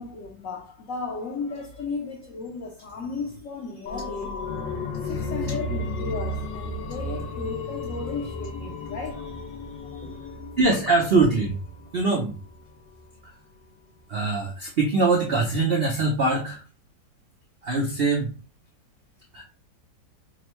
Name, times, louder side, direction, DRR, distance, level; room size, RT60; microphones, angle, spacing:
voice 1, 0.0-10.4, left 4 dB, 60° left, 0.9 m, -35 dB
sound 1, 3.9-13.2 13.6-13.7, left 2 dB, 80° left, 1.2 m, -34 dB
voice 2, 10.6-11.6 11.9-12.3 13.2-13.3 14.1-16.6 17.6-18.3 19.3-19.4, right 3 dB, 75° right, 0.5 m, -22 dB
5.2 x 2.1 x 2.9 m
omnidirectional pair, 1.9 m